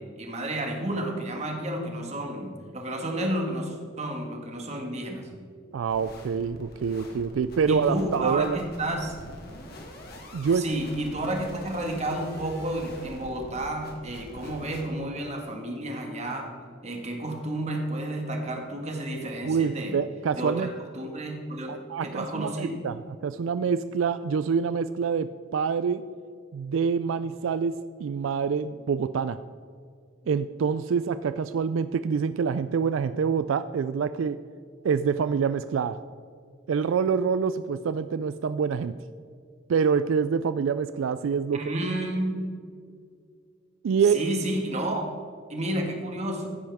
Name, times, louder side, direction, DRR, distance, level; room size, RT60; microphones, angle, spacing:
voice 1, 0.0-5.3 7.7-9.2 10.5-20.0 20.3-20.7 20.9-21.7 22.0-22.8 41.5-42.4 44.1-45.1 45.5-46.5, right 1 dB, 35° right, 2 dB, 1.7 m, -31 dB
voice 2, 5.7-8.6 10.3-10.6 19.4-20.7 21.7-26.0 26.5-29.4 30.3-34.4 34.8-36.0 36.7-38.9 39.7-41.7 43.8-44.2, right 6 dB, 80° right, 13 dB, 0.3 m, -26 dB
sound 1, 5.9-14.8, left 1 dB, 50° left, 1.9 m, -44 dB
15.0 x 10.0 x 3.5 m, 2.2 s
head